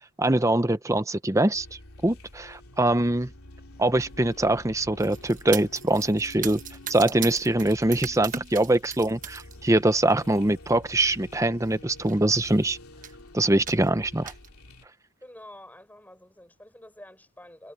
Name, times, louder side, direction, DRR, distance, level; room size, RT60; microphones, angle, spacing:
voice 1, 0.2-1.7 2.0-3.3 3.8-6.6 6.9-12.8 13.3-14.3, right 1 dB, 15° right, 0.8 m, -23 dB
sound 1, 1.5-14.9, left 1 dB, 85° left, 2.9 m, -48 dB
sound 2, 5.0-9.6 9.9-10.4 11.2-11.3 11.7-11.8 12.0-12.6 13.0-13.2 13.7-14.5, right 8 dB, 35° right, 1.2 m, -38 dB
voice 2, 15.2-17.7, left 1 dB, 10° left, 7.4 m, -48 dB
head